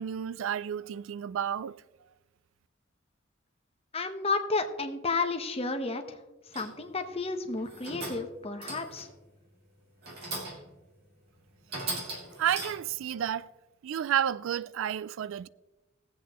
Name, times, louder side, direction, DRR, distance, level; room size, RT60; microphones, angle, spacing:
voice 1, 0.0-1.8 12.4-13.5 13.8-15.5, right 9 dB, 65° right, 0.3 m, -31 dB
voice 2, 3.9-6.2 6.5-9.1, left 3 dB, 30° left, 1.1 m, -32 dB
sound 1, 6.5-6.9 7.6-8.3 8.6-9.2 10.0-10.7 11.2-11.3 11.7-13.0, right 2 dB, 50° right, 3.2 m, -38 dB
20.5 x 8.0 x 3.0 m
head